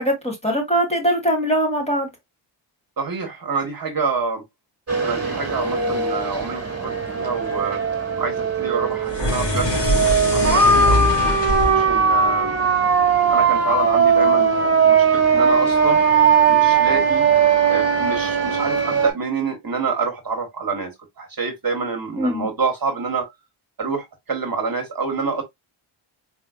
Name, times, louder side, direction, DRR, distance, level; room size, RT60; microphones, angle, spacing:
voice 1, 0.0-2.1 22.2-22.5, equal, 15° left, 1.9 m, -21 dB
voice 2, 3.0-4.4 5.0-7.8 8.2-9.7 10.3-11.1 11.7-12.6 13.3-16.0 16.5-17.3 17.7-23.3 23.8-25.4, right 5 dB, 45° right, 1.3 m, -27 dB
sound 1, 4.9-19.1, right 5 dB, 30° right, 1.7 m, -19 dB
sound 2, 9.0-13.4, left 1 dB, 55° left, 2.5 m, -24 dB
4.3 x 3.5 x 2.3 m
cardioid pair, 75°, 49 cm